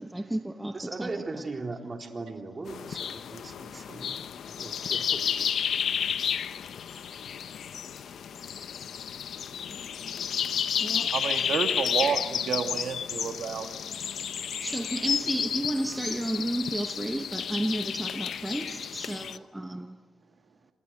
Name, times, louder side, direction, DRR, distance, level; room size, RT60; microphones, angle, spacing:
voice 1, 0.0-1.1 10.8-11.1 14.6-20.0, right 1 dB, 10° right, 1.1 m, -32 dB
voice 2, 0.7-5.8, right 3 dB, 25° right, 4.0 m, -39 dB
sound 1, 2.7-19.4, left 8 dB, 65° left, 1.0 m, -32 dB
voice 3, 10.9-13.8, right 7 dB, 65° right, 1.9 m, -30 dB
29.0 x 27.0 x 6.5 m
cardioid pair, 125°, 0 cm